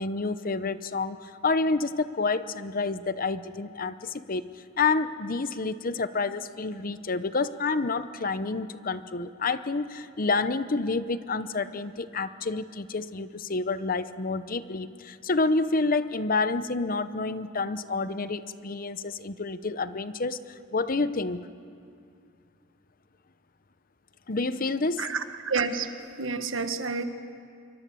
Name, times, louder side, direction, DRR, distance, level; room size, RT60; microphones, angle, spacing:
voice 1, 0.0-4.5 4.8-21.5 24.3-25.1, left 3 dB, 45° left, 13 dB, 0.8 m, -29 dB
voice 2, 25.0-25.9 26.2-27.0, right 4 dB, 75° right, 8 dB, 1.5 m, -29 dB
26.5 x 24.0 x 7.0 m, 2.3 s
head